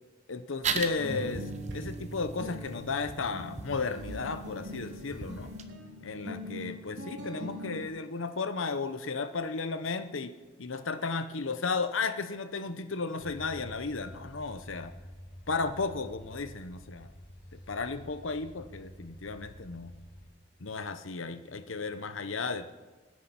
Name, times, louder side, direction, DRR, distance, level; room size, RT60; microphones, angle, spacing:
voice 1, 0.3-1.5 1.7-5.5 6.0-10.3 10.6-14.9 15.5-17.1 17.7-19.9 20.6-22.7, left 4 dB, 90° left, 10 dB, 0.9 m, -34 dB
sound 1, 0.6-5.6, right 5 dB, 35° right, 0.9 m, -39 dB
sound 2, 1.0-7.8, equal, 65° right, 3.7 m, -42 dB
sound 3, 13.2-20.3, equal, 70° left, 5.1 m, -49 dB
25.0 x 9.7 x 6.0 m, 1.3 s
head